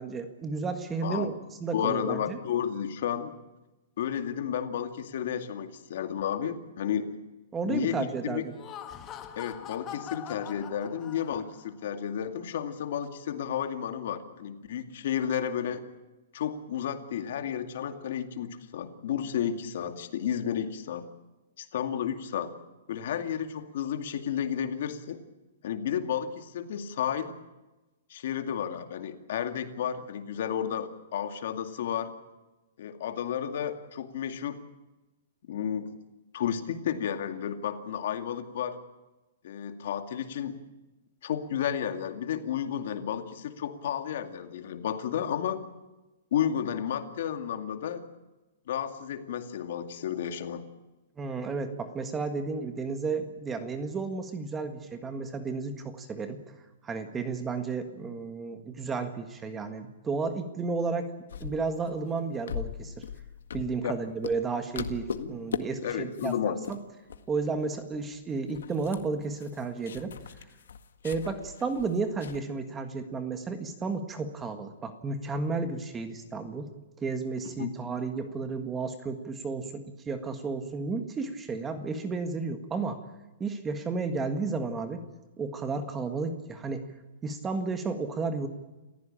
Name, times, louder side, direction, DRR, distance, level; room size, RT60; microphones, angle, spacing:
voice 1, 0.0-1.3 1.6-2.4 7.5-8.5 51.2-56.4 56.8-61.1 61.4-63.0 63.5-66.8 67.3-70.1 71.0-76.7 77.0-83.0 83.4-85.0 85.4-86.8 87.2-88.5, right 4 dB, 10° right, 8 dB, 1.6 m, -32 dB
voice 2, 1.0-1.3 1.7-3.3 4.0-7.1 7.7-8.4 9.4-15.8 16.3-21.0 21.6-22.5 22.9-25.2 25.6-27.3 28.1-32.1 32.8-34.6 35.5-35.9 36.3-38.8 39.4-40.6 41.2-45.6 46.3-48.0 48.7-50.6 63.8-64.0 65.1-65.3 65.8-66.6 77.4-77.7, left 9 dB, 55° left, 7 dB, 2.3 m, -32 dB
Laughter, 8.4-11.7, left 9 dB, 20° left, 1.4 m, -43 dB
sound 1, 61.3-64.0 64.2-64.5 64.8-65.6 65.9-66.4 66.6-66.8 67.1-67.7 67.9-68.0 68.4-72.4, left 7 dB, 85° left, 1.7 m, -39 dB
29.0 x 15.5 x 8.9 m, 1.1 s
hypercardioid pair, 165°, 0 cm